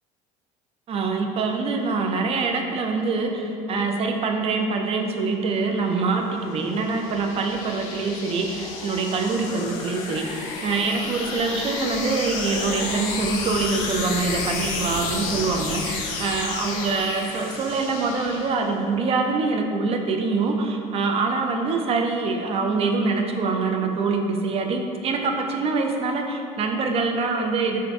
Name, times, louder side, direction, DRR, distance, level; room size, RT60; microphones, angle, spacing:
voice 1, 0.9-27.8, right 4 dB, 35° right, 3 dB, 0.4 m, -25 dB
sound 1, 5.4-18.9, left 4 dB, 80° left, 0.4 m, -32 dB
3.9 x 2.5 x 2.2 m, 2.5 s
supercardioid pair, 90°, 17 cm